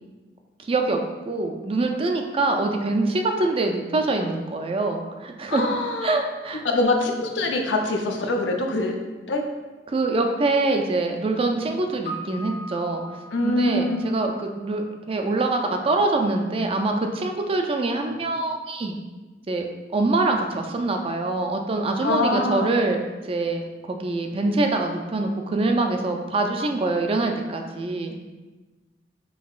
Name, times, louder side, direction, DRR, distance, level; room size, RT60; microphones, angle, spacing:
voice 1, 0.6-1.0 1.3-5.7 6.0-6.6 9.9-13.0 13.4-18.9 19.5-19.7 19.9-23.0 23.2-28.2, right 2 dB, 30° right, 4 dB, 0.4 m, -24 dB
voice 2, 5.5-6.2 6.6-9.0 9.3-9.4 13.3-14.1 22.0-22.7, left 2 dB, 80° left, 3 dB, 0.5 m, -24 dB
Piano, 12.1-14.9, right 1 dB, 50° left, 1.2 m, -40 dB
5.4 x 2.8 x 2.4 m, 1.2 s
head